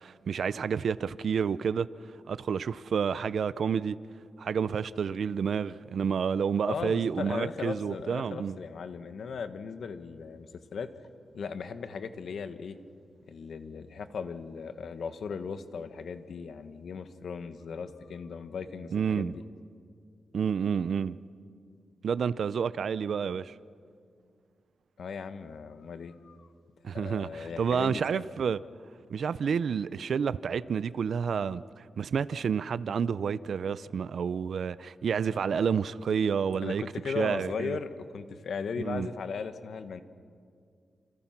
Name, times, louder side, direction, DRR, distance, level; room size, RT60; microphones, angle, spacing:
voice 1, 0.0-1.9 2.3-4.0 4.4-8.6 18.9-19.3 20.3-21.2 22.0-23.5 26.8-28.6 29.1-37.8 38.8-39.1, right 6 dB, 70° right, 0.6 m, -29 dB
voice 2, 6.7-10.9 11.3-12.8 13.3-19.4 25.0-26.5 26.9-28.2 36.6-40.0, left 5 dB, 75° left, 1.5 m, -37 dB
28.5 x 28.0 x 6.0 m
wide cardioid pair, 105°, 0 cm